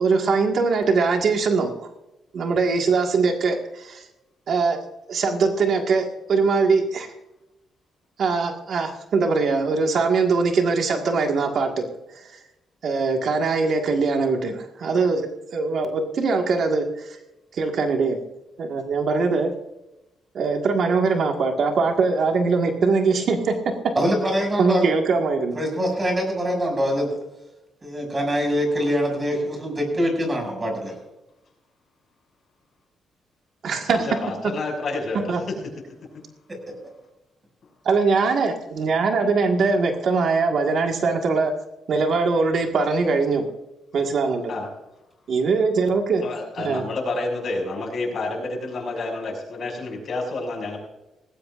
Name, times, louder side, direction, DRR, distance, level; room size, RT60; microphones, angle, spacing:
voice 1, 0.0-1.7 2.3-4.0 4.5-4.8 5.1-7.1 8.2-11.8 12.1-12.4 12.8-17.2 17.5-18.2 18.6-19.5 20.3-23.7 24.6-25.6 33.6-34.1 35.3-35.4 37.8-41.6 41.9-43.5 43.9-44.5 45.3-46.2 46.6-46.9, right 4 dB, 60° right, 3 dB, 1.8 m, -22 dB
voice 2, 23.9-24.9 25.5-27.2 27.8-30.9, equal, 25° right, 2 dB, 6.6 m, -24 dB
voice 3, 34.0-35.6 44.5-44.7 46.2-50.8, left 2 dB, 50° left, 1 dB, 6.3 m, -29 dB
19.0 x 17.0 x 2.5 m, 0.94 s
cardioid pair, 110°, 0 cm